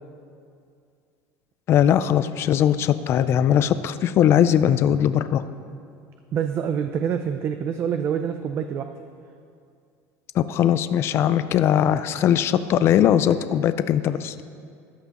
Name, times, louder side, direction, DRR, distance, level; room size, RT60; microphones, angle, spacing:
voice 1, 1.7-5.4 10.3-14.3, left 10 dB, 35° left, 13 dB, 0.4 m, -20 dB
voice 2, 6.3-8.9, right 8 dB, 35° right, 7 dB, 0.4 m, -26 dB
13.5 x 11.5 x 3.0 m, 2.4 s
cardioid pair, 155°, 7 cm